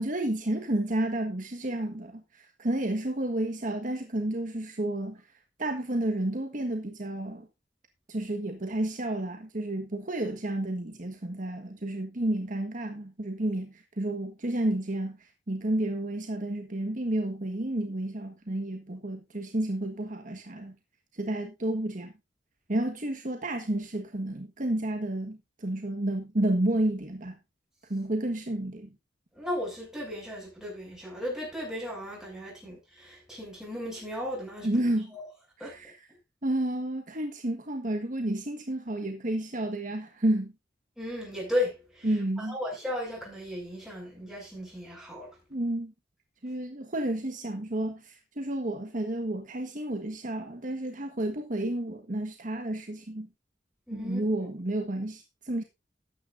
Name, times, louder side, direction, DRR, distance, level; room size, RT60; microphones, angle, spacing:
voice 1, 0.0-5.2 5.6-7.5 8.1-20.7 21.1-22.1 22.7-27.3 27.9-28.9 34.6-35.2 35.6-36.0 36.4-40.5 42.0-42.6 45.5-45.9 46.4-53.3 53.9-55.6, right 1 dB, 45° right, 1.5 m, -31 dB
voice 2, 29.4-34.7 35.1-35.2 35.6-35.7 41.0-42.1 42.4-45.3 53.9-54.2, left 1 dB, 5° right, 7.6 m, -35 dB
14.0 x 9.9 x 2.6 m
head